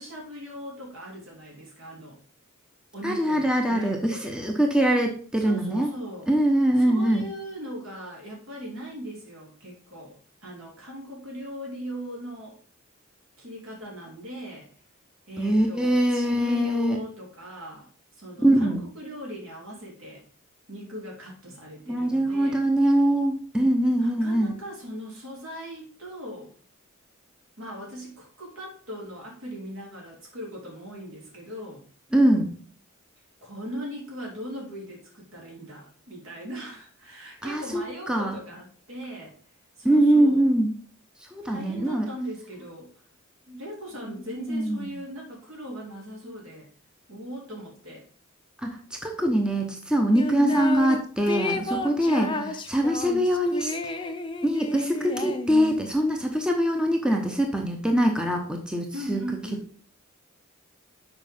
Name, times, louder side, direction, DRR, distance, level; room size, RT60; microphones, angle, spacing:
voice 1, 0.0-2.2 2.9-4.3 5.4-6.3 6.8-12.6 13.4-14.7 15.3-17.9 18.2-20.2 20.7-22.6 24.0-26.5 27.6-31.8 33.4-39.4 39.8-40.4 41.4-42.9 43.5-46.7 47.1-48.0 50.4-50.6 52.0-52.5 55.1-55.3 58.9-59.6, right 1 dB, 70° right, -2 dB, 3.7 m, -39 dB
voice 2, 3.0-5.9 6.3-7.2 15.4-17.0 18.4-18.8 21.9-24.5 32.1-32.5 37.4-38.4 39.8-40.7 41.3-42.1 44.3-45.0 48.6-52.3 52.7-53.7 54.4-59.2, right 1 dB, 5° right, 2 dB, 0.9 m, -23 dB
sound 1, 50.1-51.0 51.3-55.9, left 3 dB, 25° left, 0.7 m, -31 dB
7.1 x 5.2 x 5.4 m, 0.43 s
head